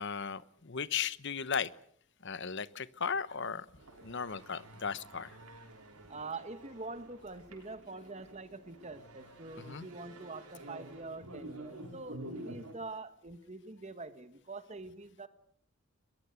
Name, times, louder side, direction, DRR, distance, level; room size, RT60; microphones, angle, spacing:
voice 1, 0.0-1.7 2.2-3.7 4.0-5.4 9.6-9.9, left 6 dB, 50° left, 16 dB, 1.0 m, -36 dB
sound 1, 3.8-12.7, right 1 dB, 90° right, 6.3 m, -50 dB
voice 2, 6.1-15.3, right 3 dB, 30° right, 11 dB, 1.5 m, -45 dB
22.5 x 22.5 x 8.2 m, 0.65 s
head